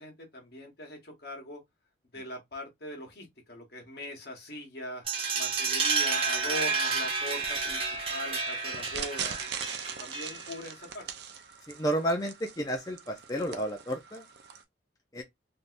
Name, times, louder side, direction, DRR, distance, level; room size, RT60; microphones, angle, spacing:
voice 1, 0.0-1.6 2.1-5.0 5.3-9.4 10.0-11.1, left 1 dB, 55° left, 1.2 m, -41 dB
sound 1, 5.1-10.6, right 4 dB, 30° right, 0.9 m, -30 dB
sound 2, 7.5-14.6, right 7 dB, 60° right, 0.5 m, -42 dB
voice 2, 11.7-14.2 15.1-15.2, right 1 dB, 20° left, 0.4 m, -31 dB
3.4 x 2.7 x 2.5 m
head